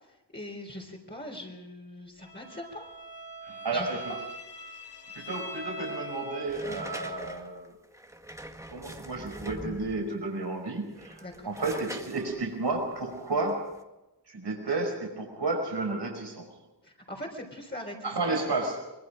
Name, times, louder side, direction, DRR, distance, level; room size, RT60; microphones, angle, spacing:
voice 1, 0.1-2.9 3.7-4.2 11.2-11.5 16.8-18.4, left 1 dB, 25° left, -3 dB, 3.9 m, -41 dB
Bowed string instrument, 2.2-6.9, right 1 dB, 90° left, 3.9 m, -41 dB
voice 2, 3.4-4.1 5.1-7.7 8.7-13.6 14.3-16.5 18.0-18.8, right 3 dB, 80° right, 2 dB, 5.1 m, -32 dB
sound 1, 6.5-10.1 10.8-13.8, right 1 dB, 5° right, 1.9 m, -43 dB
24.0 x 22.5 x 5.2 m, 0.99 s
wide cardioid pair, 80°, 40 cm